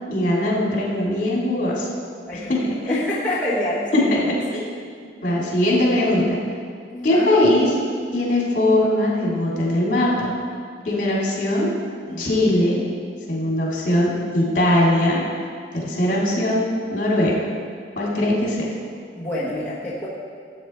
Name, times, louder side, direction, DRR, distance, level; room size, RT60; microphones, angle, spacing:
voice 1, 0.1-1.9 2.3-3.0 3.9-4.6 5.2-6.4 7.0-7.7 8.1-10.3 10.8-11.7 12.2-12.8 13.3-15.2 15.7-17.3 18.0-18.7, left 1 dB, 45° left, -4 dB, 3.0 m, -20 dB
voice 2, 2.3-4.4 6.9-7.3 12.1-12.4 19.1-20.1, left 1 dB, 10° left, -9 dB, 1.3 m, -27 dB
14.0 x 8.2 x 4.5 m, 2.1 s
head